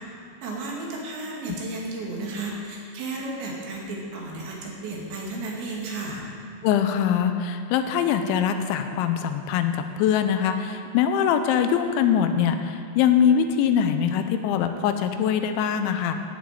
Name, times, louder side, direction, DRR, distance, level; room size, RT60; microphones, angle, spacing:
voice 1, 0.4-6.2, right 2 dB, 75° right, -3 dB, 4.3 m, -33 dB
voice 2, 6.6-16.1, left 8 dB, 85° left, 8 dB, 3.0 m, -23 dB
12.5 x 7.2 x 9.1 m, 2.3 s
omnidirectional pair, 5.3 m